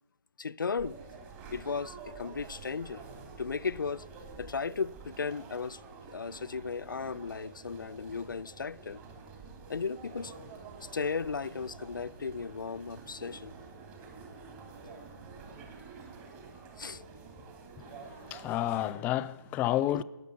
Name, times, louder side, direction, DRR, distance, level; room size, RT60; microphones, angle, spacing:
voice 1, 0.4-1.0 1.5-3.0 3.4-4.1 4.4-5.8 6.1-9.0 9.7-10.3 10.8-13.6 16.0-16.1 16.8-17.0 19.9-20.0, left 5 dB, 80° left, 0.4 m, -35 dB
sound 1, 0.8-18.9, right 4 dB, 25° right, 3.3 m, -48 dB
voice 2, 18.3-20.0, left 13 dB, 15° left, 0.4 m, -30 dB
14.0 x 9.4 x 9.7 m
figure-of-eight pair, 135°, 11 cm